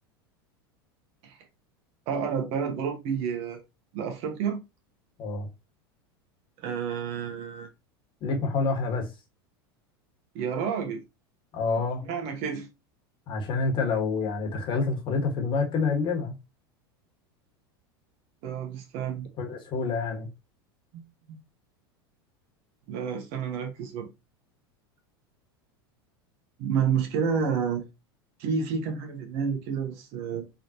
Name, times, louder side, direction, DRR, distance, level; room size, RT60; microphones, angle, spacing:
voice 1, 2.1-3.6 3.9-4.6 6.6-7.7 10.3-11.0 12.0-12.7 18.4-19.3 20.9-21.0 22.9-24.1 26.6-27.8 28.4-30.5, right 6 dB, 55° right, 1.5 m, -29 dB
voice 2, 8.2-9.1 11.5-12.0 13.3-16.3 19.4-20.3, left 4 dB, 40° left, 1.5 m, -27 dB
3.8 x 3.3 x 2.9 m
hypercardioid pair, 100°, 13 cm